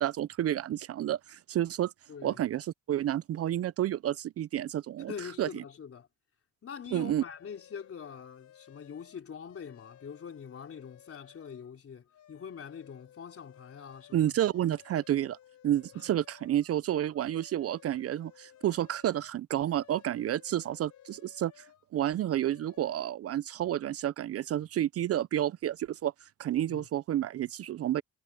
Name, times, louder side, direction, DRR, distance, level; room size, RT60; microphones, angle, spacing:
voice 1, 0.0-1.9 2.2-5.1 5.4-5.6 6.9-7.2 14.1-15.4 15.6-21.7 21.9-28.0, right 12 dB, 50° right, 0.5 m, -30 dB
voice 2, 2.1-2.4 5.1-6.1 6.6-14.4 15.9-16.1 26.7-26.9, left 7 dB, 50° left, 4.0 m, -44 dB
sound 1, 6.9-11.7 12.1-16.7 17.1-21.9 22.2-23.1, left 11 dB, 75° left, 3.9 m, -58 dB
cardioid pair, 90°, 30 cm